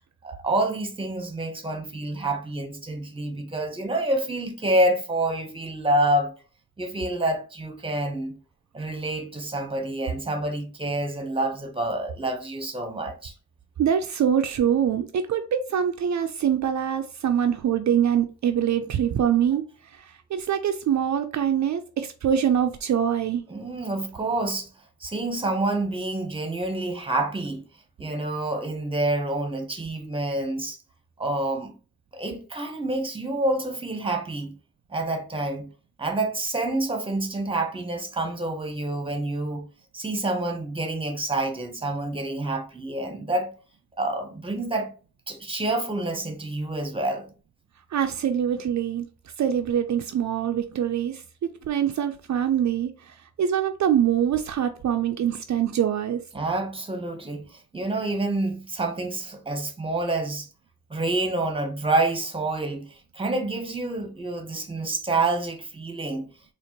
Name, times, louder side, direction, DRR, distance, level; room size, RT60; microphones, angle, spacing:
voice 1, 0.2-6.3 6.8-8.3 8.7-13.3 23.5-24.7 25.0-27.6 28.0-30.8 31.2-31.7 32.1-34.5 34.9-35.7 36.0-39.6 39.9-43.5 44.0-44.9 45.3-47.3 56.3-60.5 60.9-66.3, right 2 dB, 15° right, 0.9 m, -28 dB
voice 2, 13.8-19.6 19.9-23.4 47.9-49.1 49.4-56.2, right 9 dB, 65° right, 0.4 m, -24 dB
4.2 x 2.5 x 2.9 m
cardioid pair, 80°, 30 cm